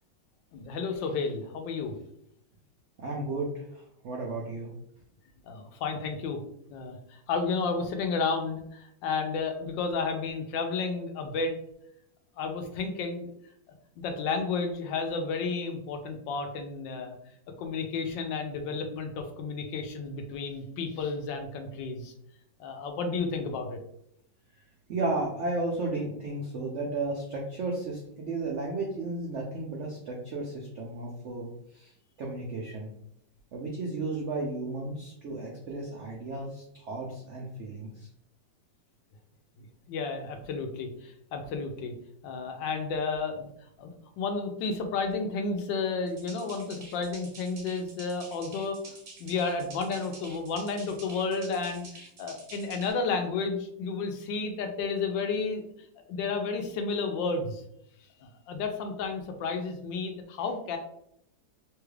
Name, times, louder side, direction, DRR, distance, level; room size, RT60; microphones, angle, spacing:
voice 1, 0.5-1.9 5.5-6.4 6.7-11.5 12.4-13.3 14.0-17.1 17.6-22.1 22.6-23.8 39.6-41.9 42.2-43.5 43.8-43.9 44.2-55.6 56.1-57.6 58.2-60.8, left 4 dB, 80° left, 5 dB, 1.3 m, -32 dB
voice 2, 3.0-4.7 24.9-31.9 32.2-32.9 33.5-38.1, right 2 dB, 85° right, -2 dB, 0.6 m, -34 dB
sound 1, 46.1-52.9, right 3 dB, 50° right, 1.0 m, -48 dB
3.3 x 2.3 x 3.2 m, 0.72 s
omnidirectional pair, 2.0 m